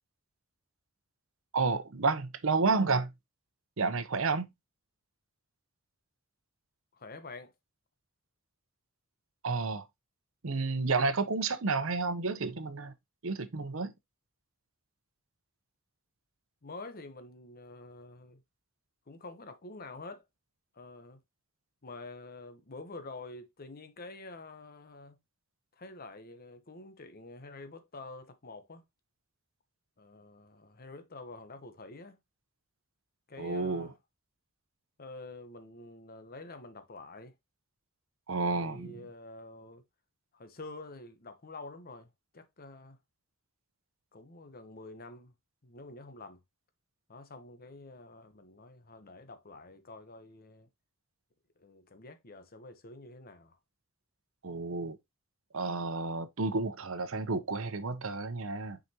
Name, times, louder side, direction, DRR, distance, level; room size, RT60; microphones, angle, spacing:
voice 1, 1.5-3.1 3.8-4.5 9.4-9.9 10.4-12.9 13.2-13.9 33.4-33.9 38.3-38.9 54.4-55.0 55.5-58.8, right 3 dB, 70° right, 0.8 m, -31 dB
voice 2, 6.9-7.5 16.6-18.4 19.1-20.2 20.7-21.2 21.8-25.2 25.7-28.9 30.0-32.2 33.3-33.9 35.0-37.3 38.5-39.8 40.3-43.0 44.1-45.3 45.6-46.4 47.1-50.7 51.6-53.6, left 2 dB, 45° left, 1.0 m, -48 dB
6.4 x 5.0 x 2.9 m
head